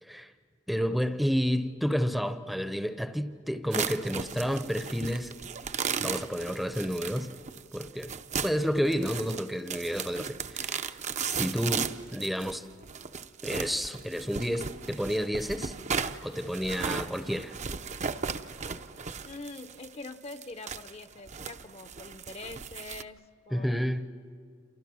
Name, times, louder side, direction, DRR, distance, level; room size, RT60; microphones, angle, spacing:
voice 1, 0.7-5.3 6.0-7.3 7.7-8.2 8.4-10.9 11.2-12.7 13.4-15.7 16.2-17.5 23.5-24.1, equal, ahead, 0.7 m, -30 dB
sound 1, 3.7-23.0, right 6 dB, 35° right, 0.6 m, -36 dB
voice 2, 19.2-23.9, left 3 dB, 30° left, 0.7 m, -44 dB
29.0 x 28.0 x 6.2 m
head